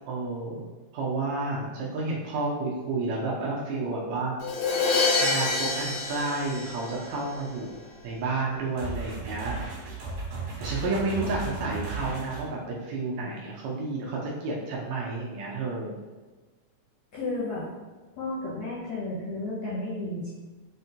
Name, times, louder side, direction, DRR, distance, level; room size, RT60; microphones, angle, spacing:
voice 1, 0.1-0.7 0.9-4.3 5.2-9.6 10.3-16.0, right 3 dB, 90° right, -4 dB, 1.5 m, -31 dB
Crash cymbal, 4.4-7.4, left 3 dB, 90° left, 2.6 m, -27 dB
sound 1, 8.8-12.5, right 4 dB, 60° right, 2.2 m, -35 dB
voice 2, 11.2-11.5 17.1-17.7 18.1-20.3, left 2 dB, 75° left, -7 dB, 1.7 m, -33 dB
5.4 x 2.2 x 2.7 m, 1.3 s
omnidirectional pair, 4.0 m